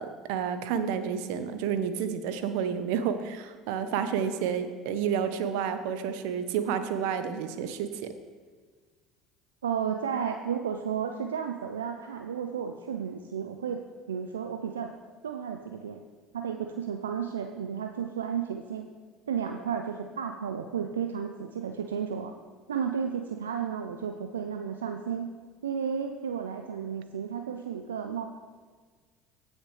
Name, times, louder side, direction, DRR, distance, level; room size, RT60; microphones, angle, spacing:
voice 1, 0.0-8.1, right 7 dB, 70° right, 9 dB, 0.9 m, -30 dB
voice 2, 9.6-13.8 14.1-14.9 15.2-16.0 16.3-18.9 19.3-22.3 22.7-25.3 25.6-28.3, right 7 dB, 90° right, 5 dB, 0.5 m, -33 dB
16.5 x 6.4 x 3.2 m, 1.5 s
hypercardioid pair, 75°, 0 cm